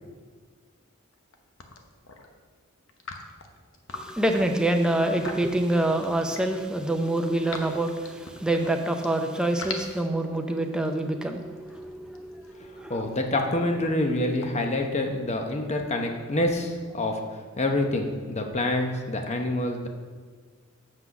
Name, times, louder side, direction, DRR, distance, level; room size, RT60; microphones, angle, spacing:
sound 1, 1.1-1.3 1.6-2.3 2.9-6.6 7.0-9.1 9.4-15.5, left 4 dB, 65° left, 0.9 m, -42 dB
voice 1, 3.9-13.1, right 1 dB, 5° right, 4 dB, 0.6 m, -26 dB
voice 2, 12.9-17.2 17.6-19.9, left 1 dB, 30° left, 4 dB, 0.8 m, -26 dB
7.6 x 6.1 x 5.9 m, 1.5 s
head